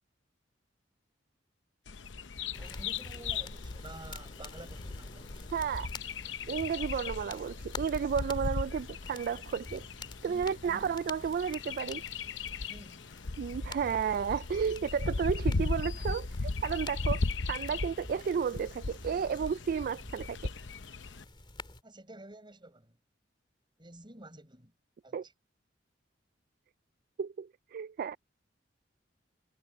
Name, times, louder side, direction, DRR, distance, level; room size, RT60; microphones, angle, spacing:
Bird vocalization bird call bird song, 1.9-21.2, left 3 dB, 70° left, 0.8 m, -37 dB
sound 1, 2.5-21.8, left 2 dB, 25° left, 2.5 m, -48 dB
voice 1, 2.6-5.4 10.3-10.9 12.6-13.0 17.7-17.8 19.8-20.0 21.8-23.0 23.8-24.7 25.0-25.3, right 1 dB, 25° right, 6.3 m, -51 dB
voice 2, 5.5-5.9 6.5-9.9 10.2-12.0 13.4-17.2 17.5-20.5 25.1-25.2 27.2-28.2, right 7 dB, 50° right, 0.3 m, -32 dB
head